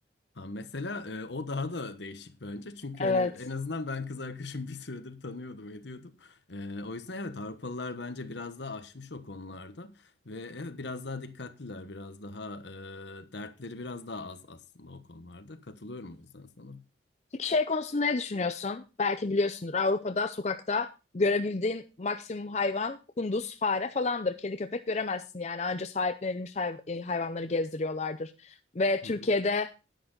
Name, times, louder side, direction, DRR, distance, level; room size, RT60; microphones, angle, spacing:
voice 1, 0.4-9.9 10.2-16.8 29.0-29.3, left 3 dB, 70° left, 1.1 m, -39 dB
voice 2, 3.0-3.3 17.3-20.9 21.1-29.7, left 3 dB, 35° left, 0.5 m, -29 dB
10.5 x 10.0 x 3.8 m
head